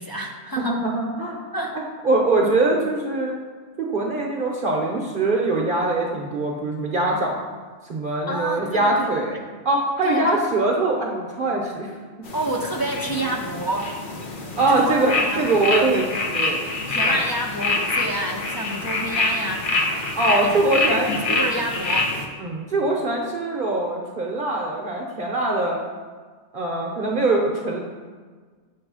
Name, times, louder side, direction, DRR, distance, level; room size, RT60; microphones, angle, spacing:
voice 1, 0.0-0.8 1.5-1.8 8.3-9.4 10.0-10.4 12.3-14.0 14.3-15.7 16.9-20.5 21.1-22.1, right 1 dB, 30° left, 0 dB, 0.4 m, -29 dB
voice 2, 0.6-1.4 2.0-3.3 3.8-7.3 7.8-9.4 9.6-11.9 14.6-16.7 17.0-17.2 20.2-21.4 22.4-25.8 26.5-27.8, right 2 dB, 50° right, -1 dB, 0.8 m, -22 dB
sound 1, 12.2-22.2, left 2 dB, 50° left, 0.9 m, -26 dB
7.8 x 3.1 x 6.1 m, 1.5 s
omnidirectional pair, 1.2 m